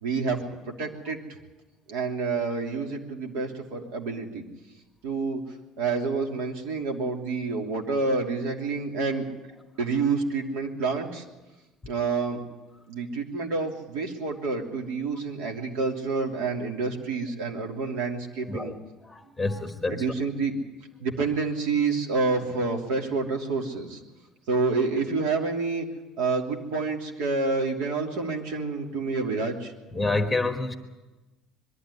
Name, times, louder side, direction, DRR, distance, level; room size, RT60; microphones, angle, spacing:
voice 1, 0.0-1.2 1.9-4.4 5.0-5.4 5.8-9.3 9.8-11.2 11.9-12.4 12.9-18.7 19.9-20.6 21.0-24.0 24.5-25.9 26.2-29.7, right 4 dB, 90° right, 2 dB, 3.0 m, -28 dB
voice 2, 19.0-20.1 29.9-30.7, left 2 dB, 5° left, 5 dB, 1.3 m, -28 dB
22.0 x 13.0 x 9.9 m, 1.1 s
cardioid pair, 175°, 0 cm